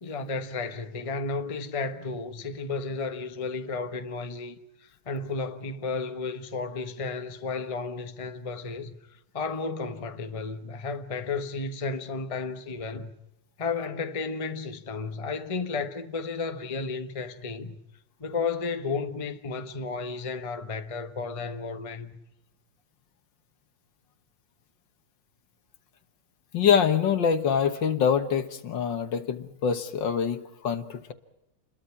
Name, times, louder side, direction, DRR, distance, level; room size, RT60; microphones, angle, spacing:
voice 1, 0.0-8.9 9.3-13.1 13.6-17.8 18.2-22.2, left 4 dB, 20° left, 1.0 m, -33 dB
voice 2, 26.5-31.1, left 7 dB, 60° left, 1.9 m, -25 dB
28.5 x 22.0 x 5.9 m
omnidirectional pair, 2.4 m